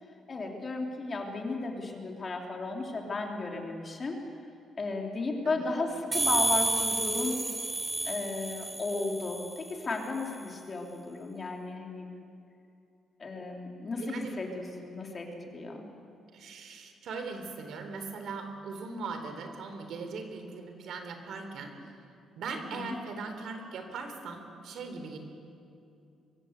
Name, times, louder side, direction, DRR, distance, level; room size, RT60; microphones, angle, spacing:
voice 1, 0.3-4.2 4.8-7.5 8.0-12.1 13.2-15.8 22.7-22.9, left 3 dB, 30° left, 1 dB, 3.1 m, -34 dB
sound 1, 6.1-9.7, right 1 dB, 15° right, 2.1 m, -30 dB
voice 2, 13.9-14.4 16.3-22.0 22.4-25.2, right 4 dB, 65° right, 6 dB, 3.6 m, -40 dB
24.0 x 23.5 x 8.1 m, 2.6 s
cardioid pair, 160°, 0 cm